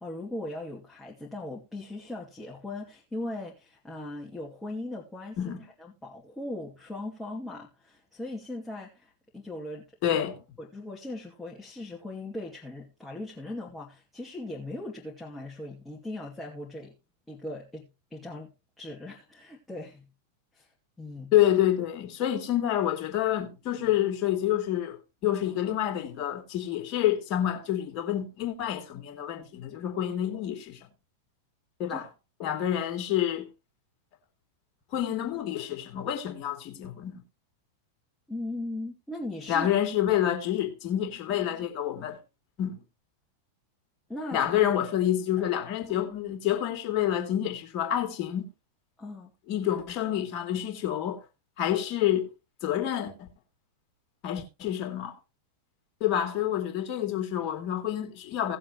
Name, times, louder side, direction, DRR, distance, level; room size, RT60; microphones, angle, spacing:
voice 1, 0.0-5.4 5.8-9.9 10.6-16.9 17.3-18.5 18.8-20.1 20.5-20.7 21.0-21.3 31.9-32.0 38.3-39.7 44.1-44.5 49.0-49.3, left 2 dB, 5° left, 2.6 m, -39 dB
voice 2, 10.0-10.4 21.3-25.0 25.2-30.8 31.8-32.0 32.4-33.5 34.9-37.2 39.5-42.2 42.6-42.8 44.3-48.5 49.5-51.2 51.6-52.3 52.6-53.3 54.2-55.2 56.0-58.6, left 11 dB, 40° left, 2.9 m, -28 dB
18.0 x 7.4 x 3.0 m
figure-of-eight pair, 90°, 0 cm